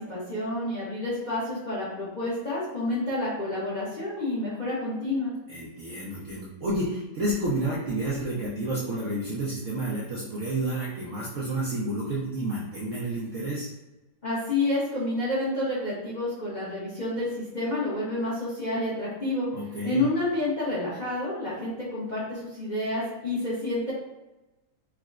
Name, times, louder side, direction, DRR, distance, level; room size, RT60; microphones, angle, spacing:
voice 1, 0.1-5.3 14.2-19.5 19.8-23.9, left 2 dB, 35° left, -9 dB, 0.8 m, -29 dB
voice 2, 5.5-13.7 19.5-20.1, right 1 dB, 65° right, -5 dB, 0.8 m, -30 dB
4.7 x 2.1 x 2.3 m, 1.0 s
omnidirectional pair, 1.8 m